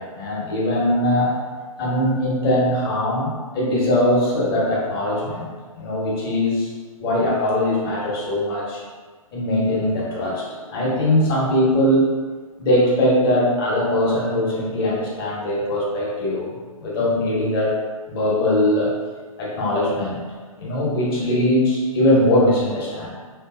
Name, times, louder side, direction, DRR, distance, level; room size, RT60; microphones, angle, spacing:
voice 1, 0.0-1.4 1.8-5.5 5.8-6.7 7.0-8.8 9.3-12.1 12.6-17.7 18.1-18.9 19.4-20.2 20.6-23.1, left 1 dB, 40° left, -5 dB, 1.2 m, -21 dB
3.9 x 3.1 x 2.3 m, 1.5 s
figure-of-eight pair, 130°, 19 cm